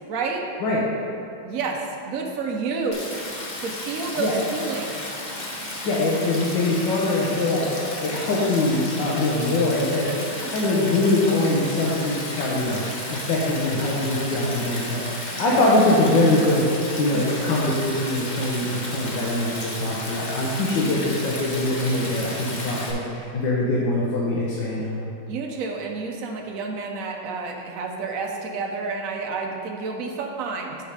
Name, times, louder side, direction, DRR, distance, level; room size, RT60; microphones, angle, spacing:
voice 1, 0.1-0.4 1.4-3.0 3.6-5.0 9.8-10.5 15.3-15.4 17.1-17.6 25.3-30.8, right 4 dB, 60° right, 1 dB, 0.9 m, -30 dB
Stream, 2.9-22.9, left 1 dB, 45° left, 0.5 m, -33 dB
voice 2, 5.8-7.7 8.0-12.8 13.1-16.7 17.0-25.1, left 2 dB, 65° left, -6 dB, 1.6 m, -23 dB
8.3 x 4.5 x 4.9 m, 2.6 s
omnidirectional pair, 2.2 m